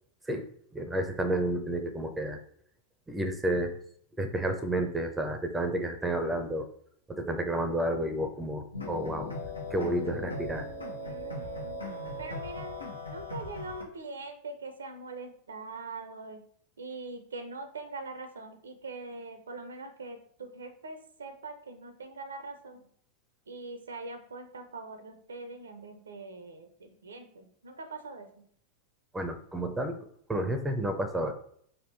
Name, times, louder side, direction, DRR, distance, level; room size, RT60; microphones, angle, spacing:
voice 1, 0.7-2.4 3.1-3.7 4.2-6.7 7.1-9.3 9.7-10.7 29.1-30.0 30.3-31.3, right 1 dB, 10° right, 7 dB, 0.5 m, -31 dB
sound 1, 8.7-13.8, left 2 dB, 80° left, 0.8 m, -38 dB
voice 2, 11.0-11.8 12.2-12.8 13.1-16.4 16.8-22.9 23.5-28.4, right 3 dB, 70° right, 7 dB, 0.5 m, -43 dB
3.5 x 2.6 x 4.0 m, 0.64 s
figure-of-eight pair, 90°, 0 cm